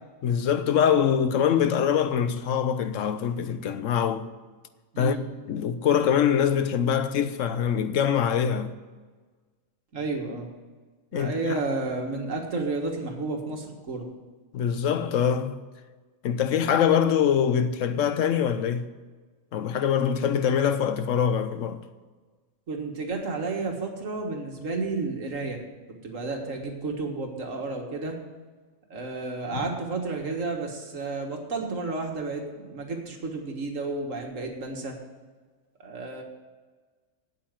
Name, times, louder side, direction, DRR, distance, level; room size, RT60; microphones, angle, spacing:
voice 1, 0.2-4.3 5.0-5.2 5.5-8.7 11.1-11.6 14.5-15.6 16.2-18.9 19.5-21.8 29.5-29.7, left 8 dB, 70° left, 1.0 m, -24 dB
voice 2, 4.9-5.3 9.9-10.5 11.1-14.1 22.7-25.6 26.0-28.2 28.9-35.0 35.8-36.2, right 3 dB, 70° right, 2.0 m, -31 dB
8.5 x 8.4 x 9.0 m
omnidirectional pair, 1.4 m